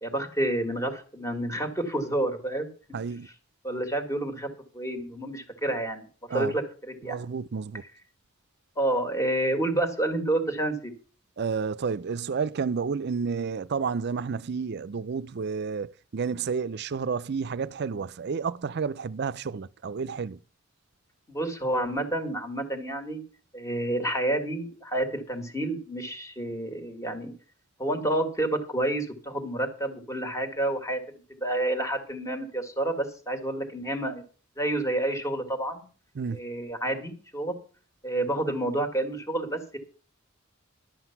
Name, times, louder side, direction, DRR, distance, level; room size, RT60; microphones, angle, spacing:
voice 1, 0.0-2.7 3.6-4.5 4.7-7.2 8.8-10.9 21.3-23.2 23.5-27.3 27.8-34.2 34.6-35.8 36.3-37.5 38.0-39.8, right 1 dB, 15° left, 1.8 m, -29 dB
voice 2, 2.9-3.3 6.3-6.5 7.0-7.8 11.4-20.4 36.2-36.4, right 5 dB, 55° right, 0.5 m, -31 dB
12.0 x 7.9 x 5.8 m
head